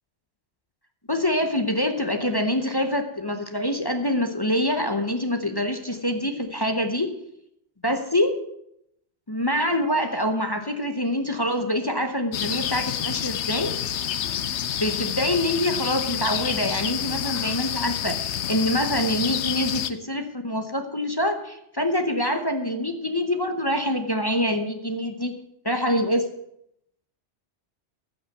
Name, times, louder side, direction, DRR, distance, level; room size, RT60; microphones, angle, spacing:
voice 1, 1.1-7.1 7.8-8.3 9.3-13.7 14.8-26.3, left 1 dB, 25° left, 6 dB, 0.8 m, -25 dB
sound 1, 12.3-19.9, left 10 dB, 75° left, 0.9 m, -28 dB
15.0 x 6.0 x 7.7 m, 0.77 s
omnidirectional pair, 1.2 m